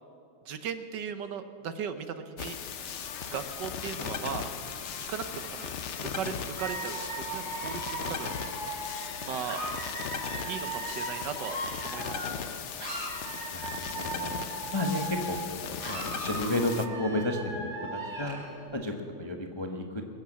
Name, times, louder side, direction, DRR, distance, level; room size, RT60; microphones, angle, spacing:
voice 1, 0.5-2.6 3.3-4.5 5.1-5.7 6.1-8.3 9.2-9.6 10.5-12.3, right 7 dB, 65° right, 9 dB, 1.3 m, -37 dB
sound 1, 2.4-16.9, left 7 dB, 65° left, 0.7 m, -38 dB
sound 2, 3.0-12.6, left 5 dB, 45° left, 1.2 m, -48 dB
Dog / Alarm, 6.6-12.5 12.8-15.5 15.8-18.5, right 2 dB, 45° right, 5.3 m, -38 dB
voice 2, 13.5-14.4 14.7-18.4 18.7-20.2, left 1 dB, 25° left, 4 dB, 0.6 m, -32 dB
21.5 x 8.9 x 7.3 m, 2.6 s
omnidirectional pair, 2.2 m